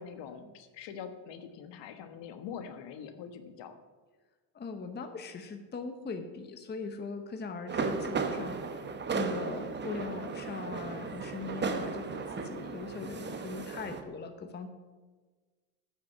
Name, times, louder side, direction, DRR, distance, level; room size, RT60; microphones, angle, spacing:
voice 1, 0.0-3.8, left 7 dB, 60° left, 8 dB, 1.3 m, -44 dB
voice 2, 4.5-8.6 9.1-14.7, left 4 dB, 20° left, 7 dB, 0.9 m, -40 dB
sound 1, 7.7-14.0, right 5 dB, 20° right, 0.9 m, -35 dB
9.8 x 6.5 x 8.3 m, 1.3 s
cardioid pair, 120°, 49 cm